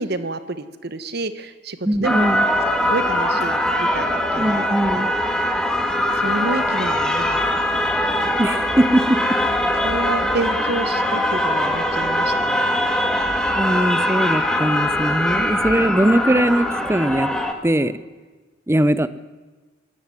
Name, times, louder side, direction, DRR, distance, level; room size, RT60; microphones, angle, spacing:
voice 1, 0.0-2.3 2.9-4.7 5.0-5.1 6.1-8.4 9.8-12.9 15.3-15.4, right 2 dB, 55° right, 12 dB, 1.2 m, -29 dB
voice 2, 1.8-2.4 4.4-5.1 8.4-9.4 13.5-17.3 17.6-18.0 18.7-19.1, right 1 dB, 15° right, 15 dB, 0.6 m, -20 dB
sound 1, 2.0-17.5, left 1 dB, 5° left, 1.7 m, -21 dB
19.5 x 13.5 x 9.8 m, 1.3 s
head